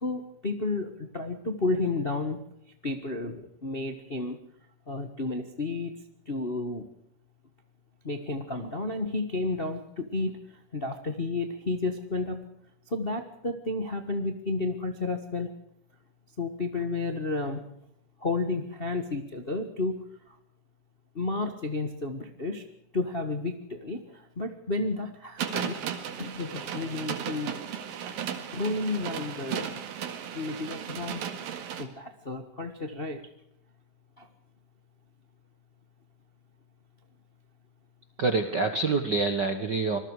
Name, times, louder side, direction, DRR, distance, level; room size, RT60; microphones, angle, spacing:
voice 1, 0.0-2.4 2.8-4.4 4.9-5.9 6.3-6.9 8.0-10.4 10.7-12.4 12.9-15.5 16.4-17.6 18.2-20.0 21.1-22.6 22.9-25.7 26.2-27.6 28.5-29.8 30.3-31.2 31.8-33.3 34.2-34.3, left 2 dB, 45° left, 7 dB, 0.6 m, -31 dB
sound 1, 25.4-31.9, right 8 dB, 85° right, 3.7 m, -35 dB
voice 2, 38.2-40.0, right 3 dB, 50° right, 8 dB, 1.4 m, -26 dB
26.0 x 20.5 x 4.8 m, 0.71 s
omnidirectional pair, 3.9 m